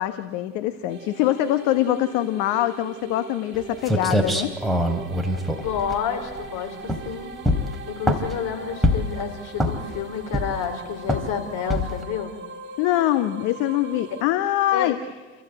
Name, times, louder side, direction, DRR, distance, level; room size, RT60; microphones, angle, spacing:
voice 1, 0.0-4.6 12.8-15.0, left 13 dB, 75° left, 9 dB, 1.5 m, -23 dB
sound 1, 0.9-14.2, right 4 dB, 30° right, 4.8 m, -41 dB
sound 2, 3.6-3.7 3.9-6.5 6.8-7.1 7.4-8.4 8.8-9.2 9.6-10.0 10.3-10.7 11.1-11.3 11.7-12.0, equal, ahead, 3.5 m, -23 dB
voice 2, 5.6-7.3 7.9-12.3 14.7-14.9, left 7 dB, 55° left, 5 dB, 4.9 m, -29 dB
28.5 x 15.5 x 9.0 m, 1.2 s
supercardioid pair, 100°, 36 cm